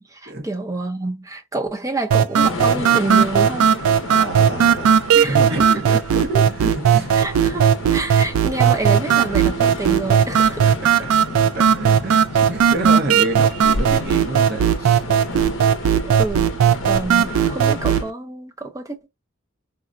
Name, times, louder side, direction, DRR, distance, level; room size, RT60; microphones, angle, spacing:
voice 1, 0.0-3.7 5.1-5.8 7.1-10.7 16.1-16.5 16.9-19.1, right 2 dB, 15° right, 0.6 m, -28 dB
sound 1, 2.1-18.1, right 8 dB, 85° right, 0.3 m, -17 dB
sound 2, 2.4-18.0, left 3 dB, 65° left, 0.6 m, -32 dB
voice 2, 4.1-7.1 10.8-11.1 11.5-15.0, right 2 dB, 50° right, 0.8 m, -28 dB
3.7 x 2.1 x 2.4 m
head